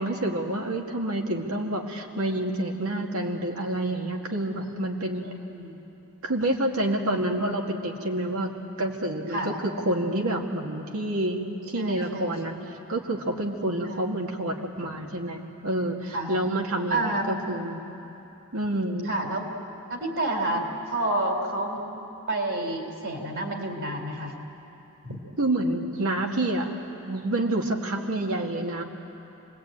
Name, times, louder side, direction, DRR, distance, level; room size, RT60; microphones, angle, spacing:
voice 1, 0.0-5.3 6.2-8.5 8.8-12.5 12.9-17.8 18.5-19.1 25.4-26.7 27.1-28.8, right 1 dB, 75° right, 1 dB, 2.1 m, -28 dB
voice 2, 11.8-12.6 13.8-14.1 16.1-16.3 16.9-17.2 19.1-19.4 19.9-21.8 22.3-24.4 25.0-25.2, right 2 dB, 55° right, 3 dB, 3.5 m, -29 dB
27.0 x 20.5 x 8.8 m, 2.9 s
head